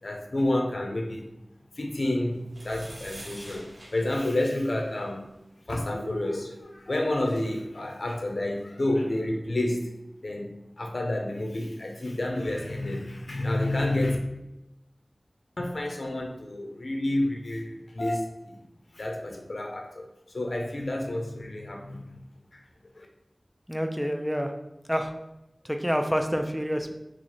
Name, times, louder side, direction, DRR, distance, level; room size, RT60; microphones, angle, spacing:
voice 1, 0.0-1.3 1.7-5.3 5.6-9.9 10.2-14.2 15.6-18.6 18.9-22.2 22.5-22.7 22.9-23.1, left 1 dB, 80° left, 2 dB, 0.6 m, -30 dB
sound 1, 2.5-5.1 6.7-6.8 7.0-7.4, right 1 dB, 80° right, 1.0 m, -46 dB
voice 2, 23.7-24.5 24.9-25.1 25.6-26.9, equal, ahead, 5 dB, 0.4 m, -27 dB
3.0 x 2.4 x 4.0 m, 0.91 s
wide cardioid pair, 55°, 0 cm